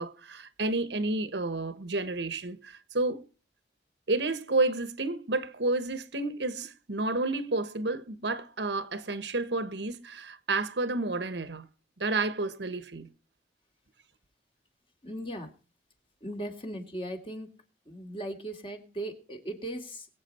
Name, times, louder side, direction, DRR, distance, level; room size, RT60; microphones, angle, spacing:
voice 1, 0.0-3.2 4.1-11.7 12.0-13.1, right 2 dB, 85° right, 1.4 m, -30 dB
voice 2, 15.0-15.5 16.2-17.5 17.9-20.1, right 1 dB, 30° left, 2.7 m, -38 dB
22.0 x 8.5 x 4.4 m
head